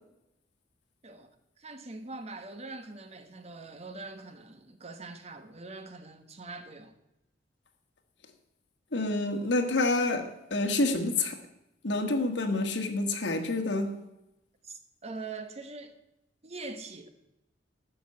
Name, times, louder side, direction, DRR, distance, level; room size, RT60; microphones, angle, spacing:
voice 1, 1.6-6.9 14.6-15.9 16.4-17.1, right 3 dB, 35° right, 1.2 m, -43 dB
voice 2, 8.9-11.4 11.8-14.0, left 2 dB, 70° left, 1.7 m, -28 dB
12.5 x 6.5 x 9.5 m
head